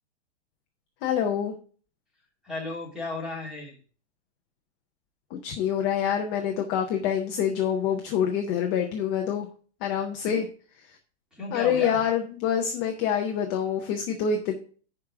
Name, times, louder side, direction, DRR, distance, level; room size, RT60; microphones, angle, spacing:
voice 1, 1.0-1.6 5.3-9.5 9.8-10.5 11.5-14.6, left 8 dB, 20° left, 3 dB, 0.5 m, -26 dB
voice 2, 2.4-3.8 10.2-10.4 11.3-12.0, left 2 dB, ahead, -3 dB, 2.4 m, -34 dB
11.0 x 4.9 x 3.6 m, 0.41 s
hypercardioid pair, 160°, 34 cm